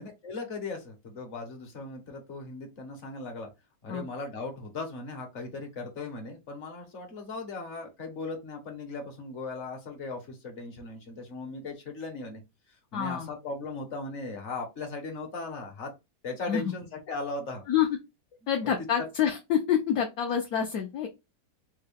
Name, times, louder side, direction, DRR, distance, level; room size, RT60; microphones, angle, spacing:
voice 1, 0.0-3.5 3.8-12.4 12.9-15.9 16.2-17.6, left 3 dB, 50° left, 3 dB, 1.2 m, -38 dB
voice 2, 12.9-13.3 16.5-16.6 17.7-17.9 18.5-21.1, left 9 dB, 70° left, 2 dB, 1.1 m, -27 dB
3.6 x 2.3 x 3.4 m, 0.23 s
omnidirectional pair, 1.8 m